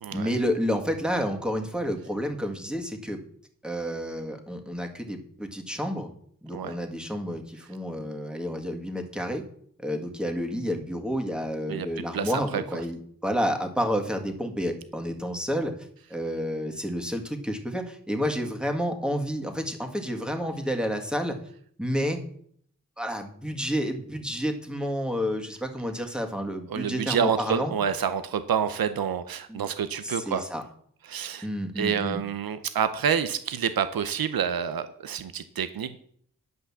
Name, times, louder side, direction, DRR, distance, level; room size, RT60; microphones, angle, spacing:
voice 1, 0.1-3.2 3.6-6.1 6.4-9.4 9.8-15.8 16.1-21.4 21.8-22.2 23.0-27.7 29.5-29.7 30.0-30.6 31.4-32.2, equal, ahead, 3 dB, 1.9 m, -30 dB
voice 2, 11.7-12.6 26.7-30.5 31.0-31.5 31.8-36.0, right 8 dB, 85° right, 12 dB, 0.7 m, -28 dB
10.5 x 5.8 x 7.2 m, 0.63 s
wide cardioid pair, 70°, 34 cm